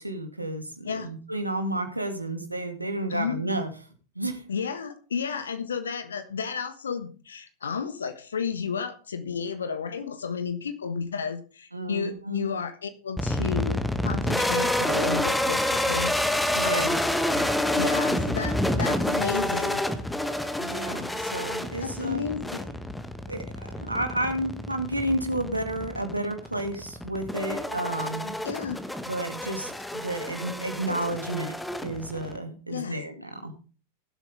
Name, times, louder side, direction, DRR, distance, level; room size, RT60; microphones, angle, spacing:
voice 1, 0.0-3.7 4.2-4.4 11.7-12.5 16.5-17.0 20.6-22.2 23.3-28.4 29.1-31.5 31.8-33.5, right 1 dB, 85° right, 6 dB, 2.3 m, -31 dB
voice 2, 3.1-3.4 4.5-17.0 17.3-17.5 17.7-19.8 21.8-22.8 28.4-28.8 30.9-31.0 32.7-33.0, left 6 dB, 70° left, 10 dB, 1.4 m, -32 dB
sound 1, 13.2-32.4, left 1 dB, 5° left, 1.4 m, -28 dB
19.0 x 8.1 x 3.5 m, 0.37 s
figure-of-eight pair, 90°, 0 cm